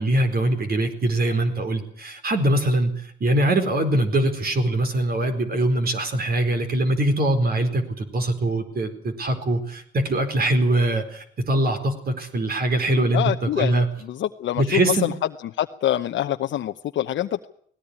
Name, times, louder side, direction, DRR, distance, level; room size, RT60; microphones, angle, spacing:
voice 1, 0.0-2.9 3.2-13.9 14.6-15.1, right 1 dB, 50° right, 7 dB, 4.5 m, -22 dB
voice 2, 12.9-15.1 15.6-17.4, left 12 dB, 70° left, 5 dB, 0.9 m, -26 dB
19.0 x 17.0 x 9.8 m, 0.62 s
cardioid pair, 90°, 20 cm